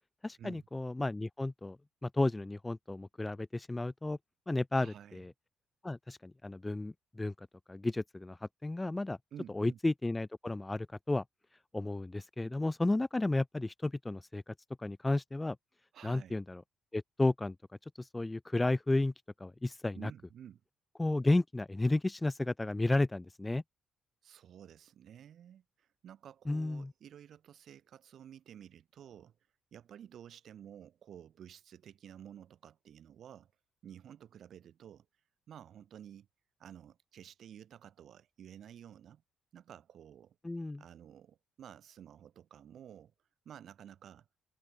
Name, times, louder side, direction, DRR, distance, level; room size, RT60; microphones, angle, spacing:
voice 1, 0.2-1.8 2.0-4.2 4.5-5.3 5.8-9.2 9.5-11.2 11.7-15.6 16.0-16.6 16.9-17.5 18.0-19.1 19.4-20.1 21.0-23.6 26.5-26.9 40.4-40.8, left 2 dB, 15° left, 0.9 m, -33 dB
voice 2, 4.7-5.2 9.3-9.8 15.9-16.4 20.0-20.6 24.2-29.4 29.7-33.5 33.8-35.1 35.5-36.3 36.6-39.2 39.5-40.4 40.8-43.1 43.5-44.3, right 9 dB, 65° right, 7.4 m, -52 dB
cardioid pair, 90°, 0 cm